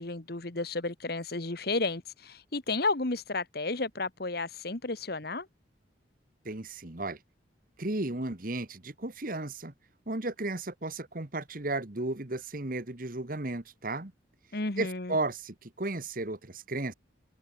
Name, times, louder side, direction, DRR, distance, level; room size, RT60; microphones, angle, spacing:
voice 1, 0.0-5.5 14.5-15.2, left 3 dB, 55° left, 1.5 m, -32 dB
voice 2, 6.4-7.2 7.8-9.7 10.1-14.1 14.8-16.9, right 2 dB, 45° right, 1.5 m, -34 dB
head